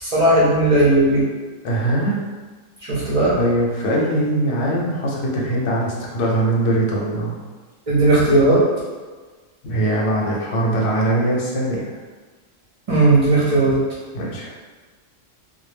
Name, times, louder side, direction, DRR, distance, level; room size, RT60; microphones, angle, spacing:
voice 1, 0.0-1.2 2.9-3.4 7.9-8.6 12.9-13.8, right 2 dB, 45° right, -8 dB, 0.4 m, -16 dB
voice 2, 1.6-2.2 3.3-7.4 9.6-11.9 14.1-14.5, right 1 dB, 65° left, -4 dB, 0.8 m, -21 dB
2.2 x 2.1 x 3.2 m, 1.4 s
omnidirectional pair, 1.3 m